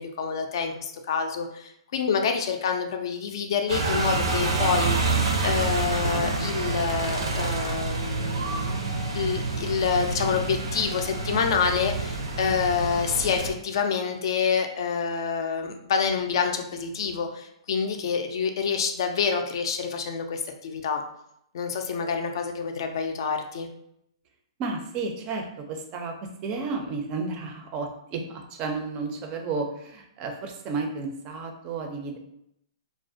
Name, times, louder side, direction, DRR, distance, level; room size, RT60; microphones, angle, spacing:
voice 1, 0.0-8.8 9.1-21.0 21.5-23.7, left 6 dB, 60° left, 5 dB, 0.3 m, -27 dB
sound 1, 3.7-13.5, right 3 dB, 85° right, 0.5 m, -28 dB
voice 2, 24.6-26.2 26.4-32.2, right 4 dB, 30° right, 4 dB, 0.4 m, -32 dB
2.4 x 2.1 x 2.5 m, 0.78 s
hypercardioid pair, 135°, 3 cm